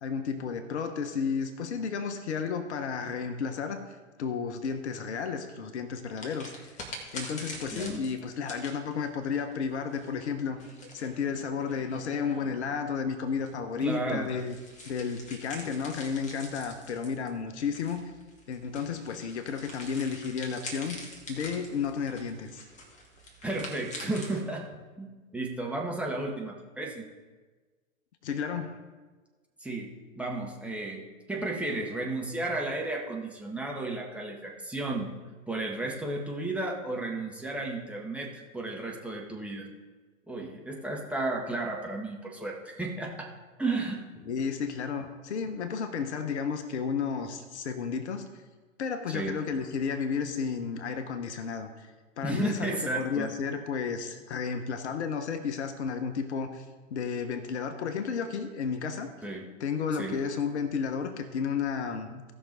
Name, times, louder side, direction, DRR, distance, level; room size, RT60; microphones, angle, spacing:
voice 1, 0.0-3.8 4.2-6.7 7.1-10.6 10.9-14.6 14.9-18.0 18.5-22.6 28.2-28.8 44.2-48.2 48.8-51.9 52.2-56.6 56.9-59.1 59.6-62.2, left 6 dB, 55° left, 8 dB, 1.2 m, -32 dB
sound 1, 6.1-12.8 13.4-24.4, left 1 dB, 20° left, 2.1 m, -45 dB
voice 2, 7.7-8.0 13.8-14.3 23.4-24.7 25.0-27.1 29.6-35.1 35.5-39.7 40.3-43.3 43.6-44.0 49.1-49.4 52.2-53.3 59.2-59.5 60.0-60.2, right 2 dB, 5° right, -2 dB, 1.3 m, -33 dB
16.5 x 6.1 x 4.0 m, 1.3 s
figure-of-eight pair, 110°, 40 cm